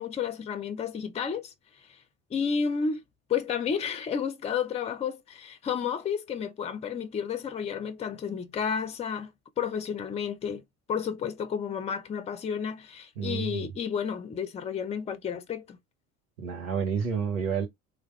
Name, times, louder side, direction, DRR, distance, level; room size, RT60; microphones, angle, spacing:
voice 1, 0.0-1.5 1.9-2.0 2.3-3.0 3.3-10.6 10.9-15.8, left 7 dB, 15° left, 0.5 m, -31 dB
voice 2, 13.2-13.7 16.4-17.7, right 6 dB, 70° right, 1.5 m, -30 dB
3.4 x 2.7 x 3.2 m
figure-of-eight pair, 70°, 42 cm